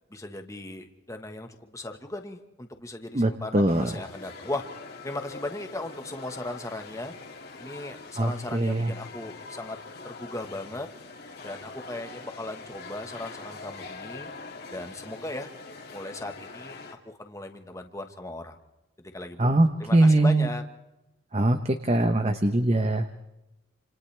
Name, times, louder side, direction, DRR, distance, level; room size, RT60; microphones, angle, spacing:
voice 1, 0.1-4.6 5.0-7.1 7.6-9.8 10.0-10.9 11.4-14.3 14.7-15.5 15.9-16.8 17.0-18.6 19.1-19.5 19.8-20.6, left 2 dB, 15° left, 5 dB, 1.4 m, -37 dB
voice 2, 3.1-3.9 8.2-8.9 19.4-20.5 21.3-23.1, right 1 dB, 30° right, 8 dB, 0.9 m, -22 dB
sound 1, 3.7-16.9, left 3 dB, 50° left, 2.5 m, -43 dB
28.5 x 27.5 x 3.4 m, 0.97 s
head